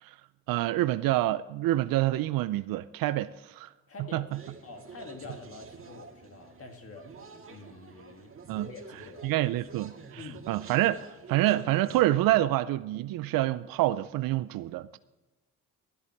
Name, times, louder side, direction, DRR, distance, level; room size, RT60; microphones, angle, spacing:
voice 1, 0.5-3.7 4.1-4.2 8.5-8.7 9.2-15.0, right 15 dB, 75° right, 0.5 m, -27 dB
voice 2, 3.9-4.3 4.6-7.2 7.5-8.3 8.6-9.3 10.2-10.5, left 3 dB, 40° left, 1.7 m, -46 dB
sound 1, 4.3-12.1, right 4 dB, 40° right, 1.7 m, -49 dB
13.0 x 11.0 x 4.6 m
supercardioid pair, 75°, 35 cm